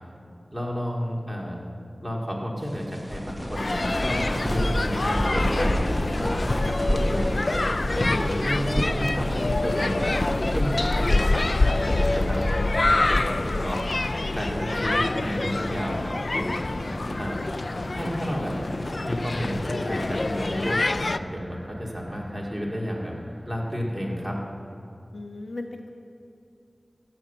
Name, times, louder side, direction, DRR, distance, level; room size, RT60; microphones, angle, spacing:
voice 1, 0.5-1.6 2.0-5.9 6.2-7.6 8.0-10.1 10.5-13.8 14.3-16.6 17.2-17.4 17.9-18.6 19.0-23.1 23.5-24.4, equal, ahead, -2 dB, 2.4 m, -31 dB
sound 1, 2.6-12.2 12.4-12.5 13.1-13.6 14.2-15.3, equal, 15° left, 1.3 m, -30 dB
sound 2, 3.6-21.2, left 2 dB, 55° left, 0.4 m, -26 dB
sound 3, 11.8-24.2, right 1 dB, 20° right, 1.0 m, -43 dB
voice 2, 25.1-25.9, left 2 dB, 70° left, 3 dB, 1.0 m, -36 dB
14.0 x 7.6 x 8.5 m, 2.5 s
wide cardioid pair, 70°, 0 cm